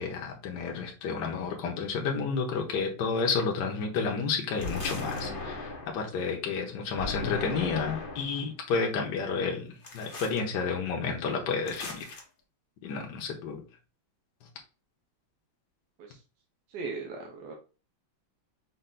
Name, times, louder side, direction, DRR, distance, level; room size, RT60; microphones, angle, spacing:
voice 1, 0.0-12.1 12.8-13.6, left 5 dB, 65° left, 1 dB, 1.5 m, -31 dB
sound 1, 4.6-6.1 7.0-8.4 9.8-10.4 11.7-12.2, left 3 dB, 40° left, 0.8 m, -37 dB
voice 2, 16.7-17.5, right 4 dB, 65° right, 1 dB, 1.2 m, -38 dB
5.5 x 2.5 x 3.8 m, 0.33 s
omnidirectional pair, 2.2 m